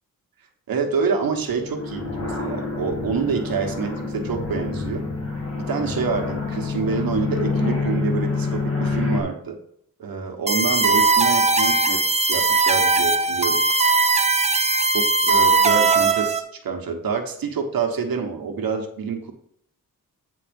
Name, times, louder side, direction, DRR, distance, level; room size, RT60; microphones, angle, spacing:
voice 1, 0.7-5.0 5.7-9.6 10.0-13.6 13.9-14.0 14.9-19.3, right 5 dB, 85° right, 4 dB, 1.3 m, -27 dB
sound 1, 1.4-9.2, left 4 dB, 40° left, 1.9 m, -27 dB
sound 2, 10.5-16.4, right 3 dB, 20° right, 0.8 m, -19 dB
8.9 x 4.1 x 5.2 m, 0.69 s
wide cardioid pair, 110°, 34 cm